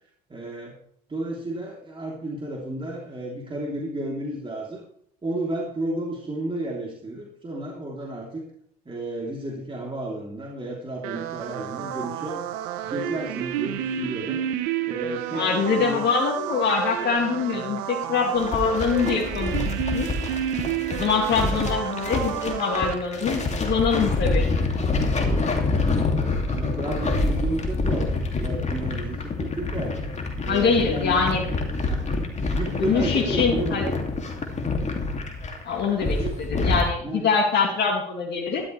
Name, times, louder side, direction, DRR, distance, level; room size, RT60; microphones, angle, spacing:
voice 1, 0.3-0.8 1.1-4.8 5.2-8.5 8.8-12.4 12.8-14.4 14.9-16.0 21.4-21.7 26.1-28.1 28.4-30.0 30.4-31.2 31.8-32.1 32.5-33.8 35.9-36.4 37.0-37.3, right 1 dB, 25° right, -2 dB, 3.3 m, -32 dB
sound 1, 11.0-22.9, right 10 dB, 80° right, 0.9 m, -30 dB
voice 2, 15.3-19.5 19.9-20.1 20.9-24.5 30.5-31.4 32.8-33.9 35.6-38.6, left 5 dB, 55° left, 0 dB, 2.3 m, -24 dB
sound 2, 18.3-36.8, left 3 dB, 35° left, 2.5 m, -26 dB
13.5 x 12.0 x 3.3 m, 0.67 s
hypercardioid pair, 60°, 20 cm